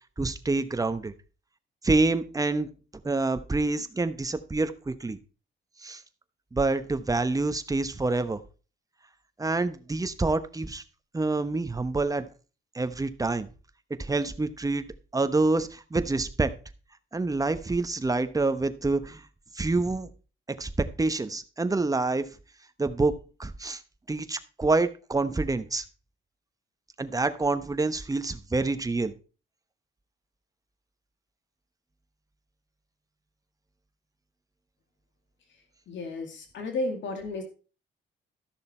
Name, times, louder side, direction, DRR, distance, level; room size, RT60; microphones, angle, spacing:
voice 1, 0.2-1.1 1.8-2.7 3.0-5.2 5.8-6.0 6.5-8.4 9.4-10.8 11.1-12.3 12.7-13.5 14.0-14.8 15.1-16.5 17.1-19.3 19.5-20.1 20.6-20.7 21.0-22.3 22.8-23.1 23.4-23.8 24.1-25.8 27.0-29.1, right 3 dB, 15° right, 11 dB, 1.1 m, -27 dB
voice 2, 35.9-37.4, left 2 dB, 70° left, 4 dB, 2.4 m, -33 dB
13.5 x 6.5 x 4.4 m, 0.35 s
cardioid pair, 90°, 20 cm